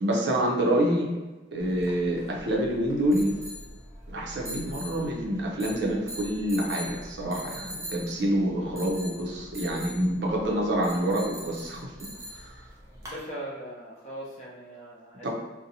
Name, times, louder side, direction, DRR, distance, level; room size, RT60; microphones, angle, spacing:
voice 1, 0.0-1.1 1.5-3.4 4.1-12.1 12.3-12.5 15.2-15.3, right 1 dB, 70° right, -1 dB, 0.5 m, -27 dB
sound 1, 1.6-13.2, equal, 15° right, 0.5 m, -42 dB
voice 2, 13.0-15.3, right 1 dB, 40° left, -4 dB, 0.6 m, -40 dB
2.7 x 2.1 x 2.7 m, 1.2 s
head